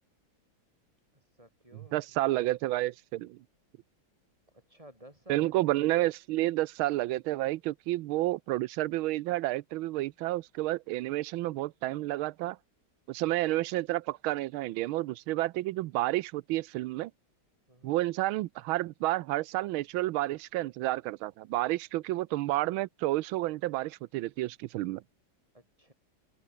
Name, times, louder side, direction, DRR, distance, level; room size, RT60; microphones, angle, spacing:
voice 1, 1.1-2.0 4.5-5.5 17.7-18.0 25.5-25.9, right 1 dB, 15° right, 8.1 m, -54 dB
voice 2, 1.9-3.4 5.3-12.6 13.1-17.1 17.8-25.0, right 17 dB, 90° right, 1.5 m, -30 dB
open air
omnidirectional pair, 2.2 m